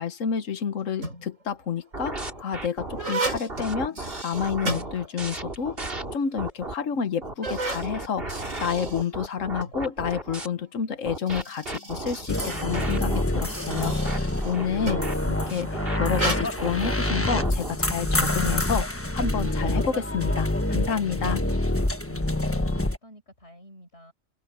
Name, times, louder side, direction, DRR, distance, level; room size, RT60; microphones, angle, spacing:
voice 1, 0.0-15.7 16.0-21.4, left 7 dB, 75° left, 1.5 m, -29 dB
sound 1, 0.8-1.4 2.1-5.5 5.8-5.9 6.6-6.7 7.2-9.8 11.0-15.2 16.1-16.4, right 2 dB, 75° right, 5.5 m, -34 dB
sound 2, 1.9-6.7 7.2-10.5 11.1-17.8, right 2 dB, 45° right, 3.4 m, -35 dB
sound 3, 12.3-23.0, left 1 dB, 10° left, 1.2 m, -26 dB
voice 2, 22.0-24.1, equal, 55° left, 7.2 m, -49 dB
open air
omnidirectional pair, 1.4 m